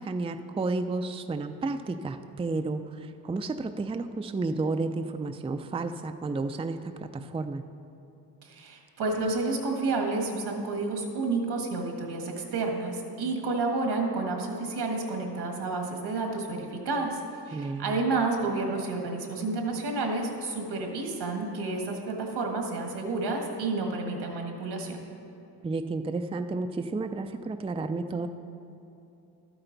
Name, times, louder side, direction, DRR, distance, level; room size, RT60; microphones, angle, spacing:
voice 1, 0.0-7.6 17.5-18.0 25.6-28.3, right 3 dB, 15° right, 7 dB, 0.4 m, -32 dB
voice 2, 8.4-17.2 17.5-25.0, right 3 dB, 80° right, 2 dB, 1.6 m, -30 dB
12.0 x 8.9 x 3.9 m, 2.8 s
cardioid pair, 75°, 40 cm